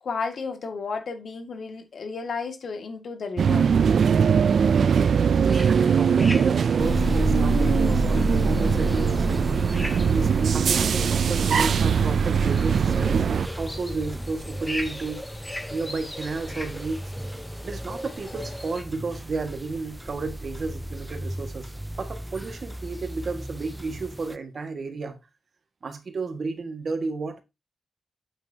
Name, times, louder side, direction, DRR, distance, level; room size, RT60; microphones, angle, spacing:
voice 1, 0.0-3.7, left 4 dB, 65° left, 2.0 m, -33 dB
sound 1, 3.4-13.5, right 7 dB, 70° right, 0.4 m, -21 dB
sound 2, 5.4-18.8, left 1 dB, 15° left, 2.0 m, -40 dB
voice 2, 5.7-9.6 10.1-15.3 15.7-17.0 17.6-21.7 22.0-25.2 25.8-27.4, right 3 dB, 55° right, 1.8 m, -32 dB
sound 3, 6.8-24.4, equal, 5° right, 0.4 m, -32 dB
8.8 x 7.3 x 2.8 m
wide cardioid pair, 115°, 0 cm